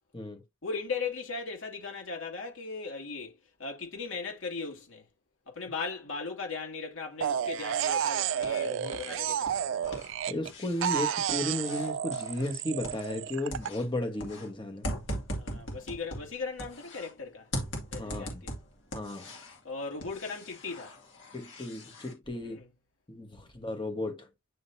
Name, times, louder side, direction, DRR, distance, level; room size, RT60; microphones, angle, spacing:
voice 1, 0.6-5.1 5.5-9.8 15.4-17.5 17.9-18.5 19.6-21.0 22.3-22.7, left 4 dB, 85° left, 2.5 m, -38 dB
sound 1, 7.2-10.5 10.8-13.7, right 9 dB, 70° right, 0.3 m, -31 dB
sound 2, 8.0-9.1 9.4-13.3 13.5-17.1 17.5-19.6 20.0-22.1, equal, 65° left, 2.4 m, -40 dB
voice 2, 10.3-14.9 18.0-18.4 18.9-19.3 21.3-22.6 23.1-24.3, left 1 dB, 25° left, 1.3 m, -34 dB
9.5 x 3.8 x 2.8 m
head